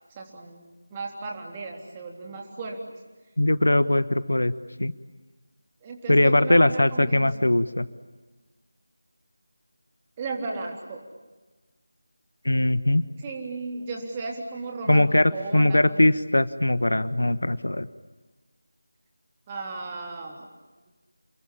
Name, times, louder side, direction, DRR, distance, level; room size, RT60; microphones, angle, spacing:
voice 1, 0.2-0.6 0.9-2.8 5.8-7.5 10.2-11.0 13.2-15.0 15.3-16.1 19.5-20.5, right 3 dB, 15° right, 0 dB, 3.5 m, -35 dB
voice 2, 3.4-4.5 4.8-4.9 6.1-7.9 12.4-13.0 14.9-17.9, left 1 dB, 65° left, 14 dB, 1.2 m, -21 dB
29.5 x 22.0 x 8.8 m, 1.3 s
figure-of-eight pair, 165°, 0 cm